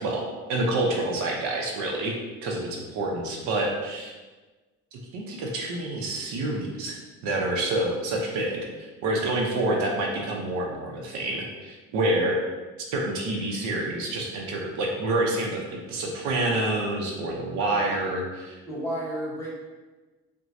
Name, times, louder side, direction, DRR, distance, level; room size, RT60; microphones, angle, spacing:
voice 1, 0.0-2.2 2.4-4.1 4.9-7.0 7.2-12.5 12.9-18.6, right 2 dB, 70° right, 0 dB, 0.8 m, -28 dB
voice 2, 17.6-18.2 18.6-19.5, equal, 10° left, -7 dB, 1.1 m, -34 dB
6.0 x 2.3 x 2.7 m, 1.2 s
cardioid pair, 160°, 30 cm